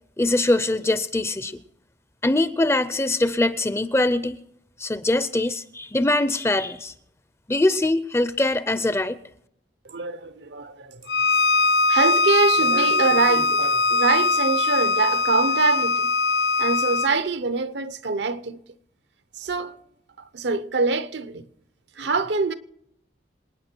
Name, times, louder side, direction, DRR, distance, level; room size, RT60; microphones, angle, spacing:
voice 1, 0.2-1.6 2.2-4.4 4.8-6.9 7.5-9.2, left 2 dB, 15° left, 0.5 m, -22 dB
voice 2, 9.8-11.1 11.9-16.1 16.6-18.6 19.4-19.8 20.2-21.5 21.9-22.5, right 4 dB, 75° right, 0.8 m, -24 dB
Bowed string instrument, 11.1-17.1, left 3 dB, 70° left, 0.4 m, -21 dB
27.0 x 9.4 x 4.5 m
head